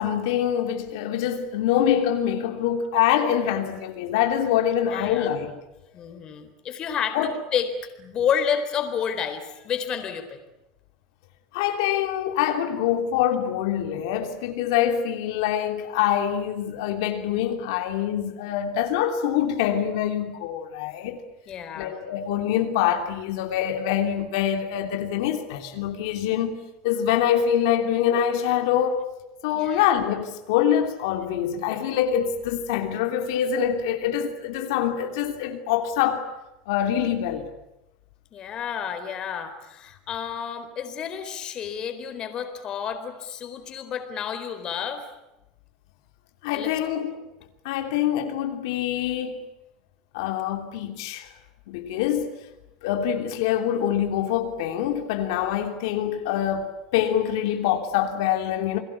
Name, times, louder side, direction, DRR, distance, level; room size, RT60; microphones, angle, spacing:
voice 1, 0.0-5.5 7.1-7.4 11.5-21.2 21.8-29.0 29.4-36.3 36.7-37.5 46.4-47.2 47.6-49.4 50.1-51.3 51.7-52.4 52.8-58.8, left 10 dB, 85° left, 3.1 m, -25 dB
voice 2, 4.9-5.4 5.9-7.7 8.0-10.4 21.5-21.9 28.1-28.2 29.5-29.8 38.3-45.0 46.5-46.7, left 8 dB, 35° left, 4.1 m, -30 dB
30.0 x 21.5 x 8.6 m
cardioid pair, 145°, 2 cm